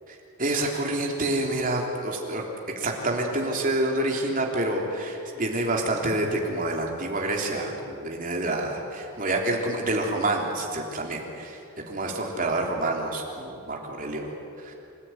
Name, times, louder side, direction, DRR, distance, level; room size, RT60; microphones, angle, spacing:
voice 1, 0.4-2.4 2.8-11.6 11.9-14.3 14.6-14.7, right 2 dB, 40° right, 0 dB, 3.4 m, -27 dB
27.0 x 15.5 x 9.2 m, 2.6 s
head